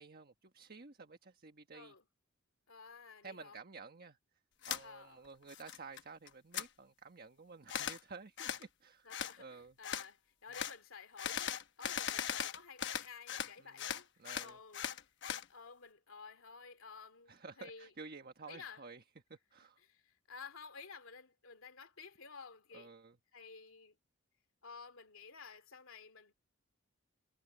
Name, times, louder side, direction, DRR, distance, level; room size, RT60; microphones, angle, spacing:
voice 1, 0.0-1.9 3.2-4.2 4.7-9.1 9.4-9.8 13.6-13.9 14.2-14.6 17.3-19.0 19.3-19.8 22.7-23.2, right 4 dB, 50° right, 1.4 m, -52 dB
voice 2, 1.7-2.1 2.7-3.6 4.8-5.2 9.0-14.1 14.4-14.8 15.5-17.9 18.5-18.8 19.8-22.9 23.3-24.0 24.6-26.3, left 5 dB, 80° left, 2.5 m, -53 dB
sound 1, 4.6-4.8 5.2-6.0 6.3-6.7 7.7-8.0 8.4-8.6 9.1-9.3 9.8-10.1 10.5-10.7 11.2-13.5 13.8-15.4, left 8 dB, 60° left, 1.0 m, -39 dB
head